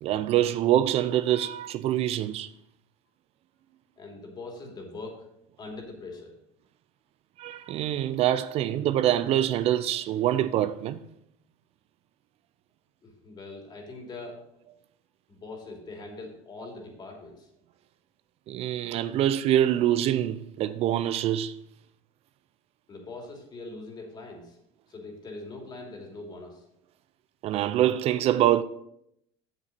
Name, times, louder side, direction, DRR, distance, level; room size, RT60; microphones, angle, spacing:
voice 1, 0.0-2.5 7.4-11.0 18.5-21.6 27.4-28.6, right 12 dB, 50° right, 0.4 m, -25 dB
voice 2, 4.0-5.3 5.6-6.3 13.0-14.4 15.3-17.5 22.9-24.6 24.9-26.6, left 3 dB, 35° left, 2.8 m, -42 dB
8.2 x 7.1 x 4.2 m
supercardioid pair, 105°, 13 cm